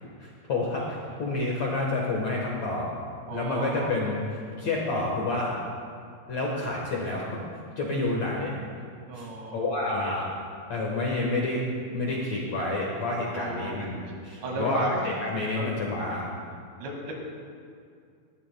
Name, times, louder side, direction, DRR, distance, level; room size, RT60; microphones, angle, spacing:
voice 1, 0.2-2.8 3.3-5.6 6.3-7.2 7.8-8.6 9.1-9.3 9.5-10.2 10.7-11.6 11.9-16.3, left 2 dB, 65° left, -3 dB, 1.7 m, -29 dB
voice 2, 0.8-1.2 3.3-4.1 9.1-10.1 13.3-13.8 14.4-14.9 15.6-15.7 16.8-17.1, right 1 dB, 75° right, -1 dB, 4.2 m, -36 dB
20.5 x 14.0 x 2.2 m, 2.3 s
omnidirectional pair, 5.1 m